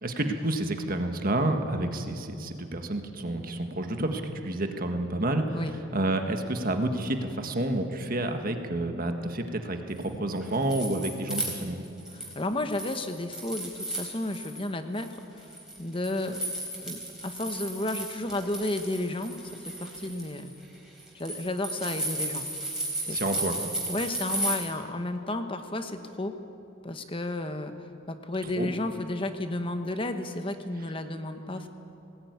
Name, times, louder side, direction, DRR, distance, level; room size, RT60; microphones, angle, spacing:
voice 1, 0.0-5.6 5.9-11.8 23.1-23.7 28.4-28.7, right 1 dB, 40° right, 5 dB, 1.7 m, -29 dB
sound 1, 10.3-12.4 12.7-14.6 14.9-24.5, right 1 dB, 5° right, 4.1 m, -34 dB
voice 2, 12.1-15.1 15.3-15.5 15.8-16.4 16.8-19.3 19.6-20.5 21.1-22.4 23.1-23.2 23.9-26.3 26.8-31.7, left 1 dB, 25° left, 7 dB, 1.1 m, -32 dB
19.0 x 19.0 x 9.5 m, 2.7 s
head